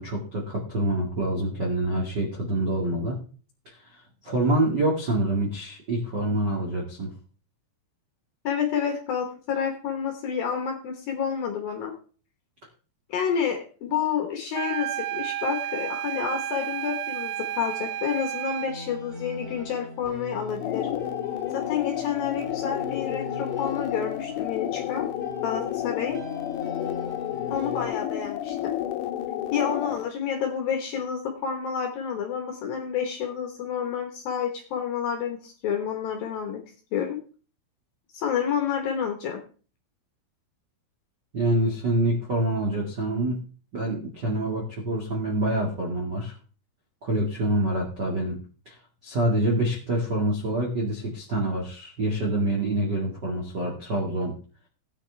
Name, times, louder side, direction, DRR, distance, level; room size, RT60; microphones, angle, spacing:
voice 1, 0.0-3.2 3.6-7.1 41.3-43.4 43.7-46.3 47.0-48.4 48.6-48.7 49.0-54.3, right 1 dB, 50° right, -3 dB, 1.2 m, -26 dB
voice 2, 8.4-11.9 13.1-21.0 21.5-25.1 25.4-26.2 27.5-28.8 29.5-36.6 36.9-37.2 38.1-39.4, left 7 dB, 65° left, 4 dB, 2.5 m, -29 dB
sound 1, 14.5-18.8, right 12 dB, 90° right, 2.2 m, -31 dB
sound 2, 18.7-27.9, equal, 25° right, 2.2 m, -41 dB
sound 3, 20.5-30.1, left 12 dB, 80° left, 2.5 m, -31 dB
17.0 x 8.9 x 3.4 m, 0.39 s
omnidirectional pair, 5.6 m